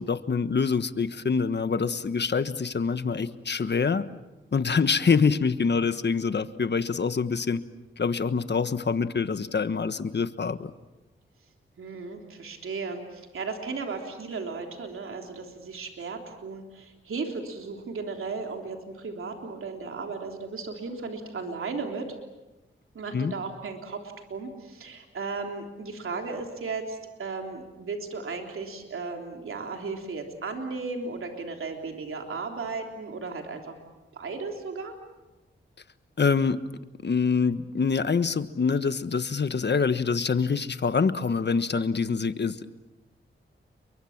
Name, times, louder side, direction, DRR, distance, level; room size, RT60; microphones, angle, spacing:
voice 1, 0.0-4.1 4.5-7.6 8.0-10.7 23.1-23.3 36.2-36.6 37.0-42.6, left 5 dB, 55° left, 12 dB, 1.4 m, -25 dB
voice 2, 11.8-22.2 22.9-24.0 24.3-33.7 34.1-34.9, right 4 dB, 80° right, 3 dB, 3.4 m, -35 dB
30.0 x 23.5 x 7.4 m, 1.1 s
cardioid pair, 65°, 21 cm